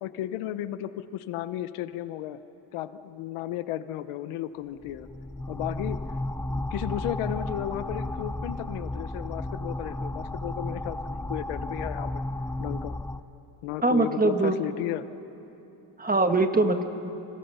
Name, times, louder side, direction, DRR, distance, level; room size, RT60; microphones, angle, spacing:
voice 1, 0.0-2.4 2.7-5.1 5.5-6.0 6.5-12.2 12.6-13.0 13.6-15.0, left 12 dB, 85° left, 13 dB, 1.0 m, -34 dB
sound 1, 4.8-13.2, left 1 dB, 5° left, 0.4 m, -33 dB
voice 2, 13.8-14.6 16.0-16.8, right 2 dB, 15° right, 7 dB, 1.5 m, -22 dB
27.0 x 26.5 x 5.6 m, 3.0 s
cardioid pair, 95°, 49 cm